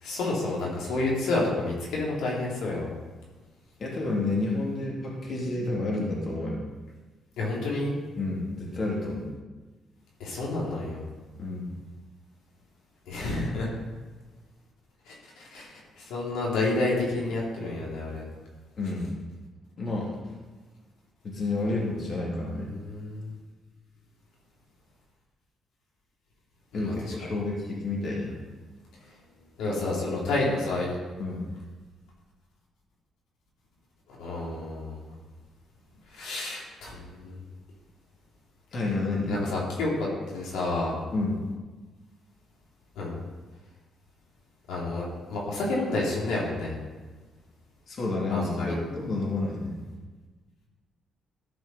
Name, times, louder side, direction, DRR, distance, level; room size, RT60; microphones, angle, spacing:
voice 1, 0.0-2.9 7.4-7.9 10.2-11.0 13.1-13.7 15.1-15.7 16.0-18.2 22.7-23.3 26.7-26.9 29.6-30.9 34.2-35.0 36.1-37.4 39.3-40.1 40.3-41.0 43.0-43.1 44.7-46.8 48.3-48.8, left 2 dB, 85° left, -4 dB, 3.3 m, -29 dB
voice 2, 3.8-6.6 8.2-9.3 11.4-11.7 18.8-19.2 19.8-20.2 21.2-22.7 26.7-28.3 31.2-31.5 38.7-39.4 41.1-41.4 47.9-49.8, left 2 dB, 45° left, -3 dB, 2.6 m, -30 dB
13.5 x 5.3 x 5.5 m, 1.3 s
cardioid pair, 90°, 0 cm